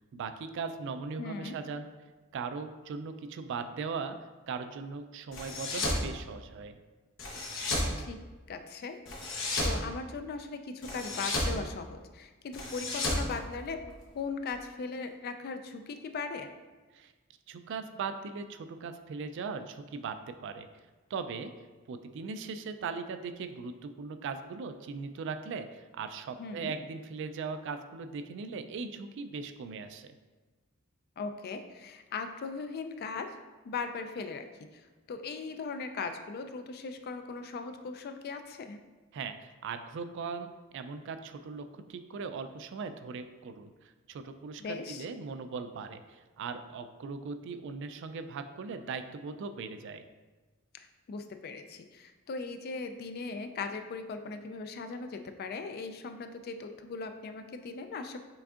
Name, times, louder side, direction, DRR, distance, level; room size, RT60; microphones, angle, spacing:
voice 1, 0.1-1.9 2.3-4.2 4.5-6.8 16.9-17.1 17.5-20.7 21.1-21.5 21.9-30.1 39.1-50.0, right 5 dB, 60° right, 9 dB, 0.3 m, -39 dB
voice 2, 1.2-1.6 8.0-8.2 8.5-9.0 9.6-16.5 26.4-26.7 31.2-33.3 33.6-34.5 34.7-34.8 35.1-38.8 44.6-45.1 50.7-58.2, left 4 dB, 45° left, 8 dB, 0.3 m, -39 dB
sound 1, 5.3-6.0 7.2-7.9 9.1-9.8 10.8-11.6 12.5-14.0, left 1 dB, 65° left, 0.9 m, -32 dB
5.9 x 3.6 x 2.4 m, 1.3 s
head